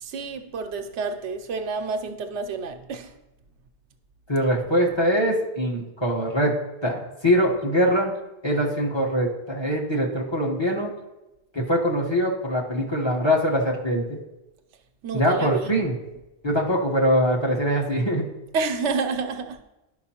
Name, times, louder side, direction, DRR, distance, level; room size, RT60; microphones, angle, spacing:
voice 1, 0.0-3.1 15.0-15.8 18.5-19.6, right 4 dB, 90° right, 1.0 m, -29 dB
voice 2, 4.3-6.5 6.8-8.1 8.4-10.9 11.5-14.2 15.1-16.0 16.4-18.3, equal, 25° left, 1.1 m, -23 dB
11.5 x 5.3 x 2.9 m
omnidirectional pair, 1.1 m